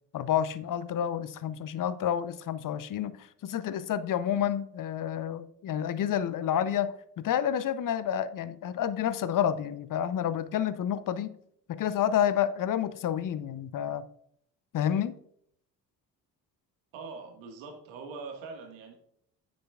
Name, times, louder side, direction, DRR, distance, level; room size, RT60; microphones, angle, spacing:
voice 1, 0.1-11.3 11.7-14.1 14.7-15.2, left 9 dB, 40° left, 0.7 m, -29 dB
voice 2, 16.9-19.0, right 4 dB, 65° right, 1.8 m, -42 dB
9.6 x 7.9 x 2.4 m
hypercardioid pair, 45°, 48 cm